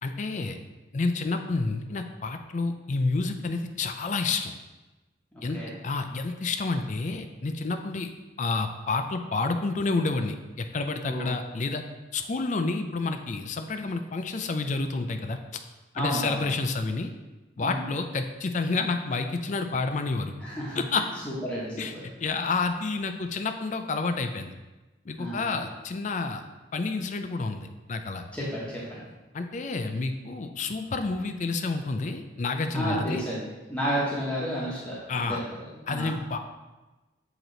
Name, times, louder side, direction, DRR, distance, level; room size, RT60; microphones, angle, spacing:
voice 1, 0.0-0.6 0.9-4.5 5.4-5.6 5.8-8.1 8.4-11.8 12.1-15.4 15.9-17.1 17.6-20.3 20.7-21.0 21.8-21.9 22.2-24.5 25.1-26.4 26.7-28.2 29.3-33.3 35.1-35.4 35.9-36.4, left 3 dB, 40° left, 7 dB, 0.4 m, -29 dB
voice 2, 5.3-5.7 11.1-11.3 15.9-16.5 17.6-17.8 20.4-20.8 21.2-22.0 25.2-25.6 28.3-29.0 32.7-36.2, equal, 5° left, -8 dB, 1.0 m, -32 dB
7.9 x 3.0 x 3.9 m, 1.1 s
head